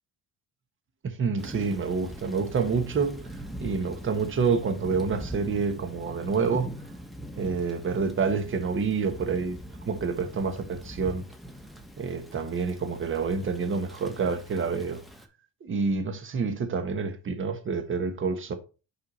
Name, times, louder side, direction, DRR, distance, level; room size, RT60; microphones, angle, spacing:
voice 1, 1.0-6.8 7.3-11.2 12.0-15.0 15.6-18.5, right 5 dB, 35° right, 1.2 m, -28 dB
Thunder / Rain, 1.4-15.3, right 1 dB, ahead, 1.1 m, -42 dB
5.6 x 5.0 x 4.1 m
cardioid pair, 100°, 35 cm